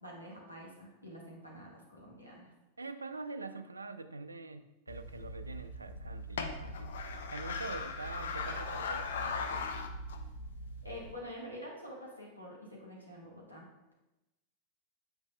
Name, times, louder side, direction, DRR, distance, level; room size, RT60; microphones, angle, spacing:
voice 1, 0.0-2.5 10.8-13.9, equal, 90° left, -4 dB, 1.4 m, -47 dB
voice 2, 2.8-9.7, right 3 dB, 80° right, 10 dB, 0.3 m, -45 dB
sound 1, 4.9-11.1, left 3 dB, 60° left, 0.5 m, -39 dB
7.6 x 5.6 x 2.2 m, 0.96 s
figure-of-eight pair, 90°, 0 cm